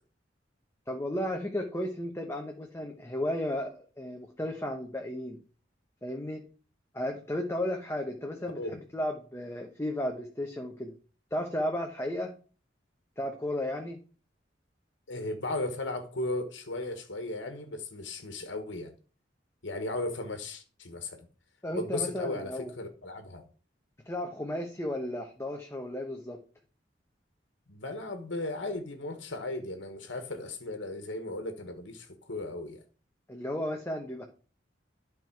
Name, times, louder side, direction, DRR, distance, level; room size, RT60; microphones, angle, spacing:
voice 1, 0.9-5.4 6.0-6.4 6.9-10.9 11.3-12.3 13.2-14.0 21.6-22.7 24.1-26.4 33.3-34.3, left 1 dB, 15° left, 1.0 m, -34 dB
voice 2, 15.1-18.9 19.6-21.3 21.7-23.5 27.7-32.8, left 2 dB, 90° left, 1.4 m, -36 dB
11.5 x 4.7 x 4.6 m
head